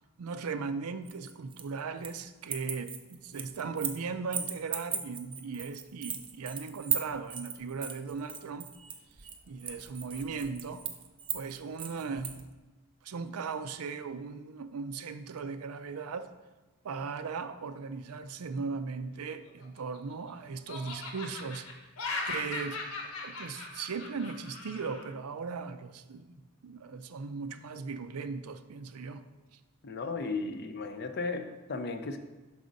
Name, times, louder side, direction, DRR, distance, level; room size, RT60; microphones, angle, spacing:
voice 1, 0.2-8.7 9.5-10.8 11.3-12.4 13.0-16.3 16.8-21.7 22.2-22.8 23.2-29.3, right 5 dB, 90° right, 10 dB, 0.5 m, -38 dB
sound 1, 1.1-2.2 2.5-4.0 4.3-12.4, right 8 dB, 25° right, 0.4 m, -37 dB
Laughter, 19.5-20.3 20.7-25.0, left 3 dB, 80° left, 1.0 m, -39 dB
voice 2, 29.8-32.2, left 3 dB, 50° left, 8 dB, 0.5 m, -35 dB
6.1 x 5.0 x 3.9 m, 1.2 s
head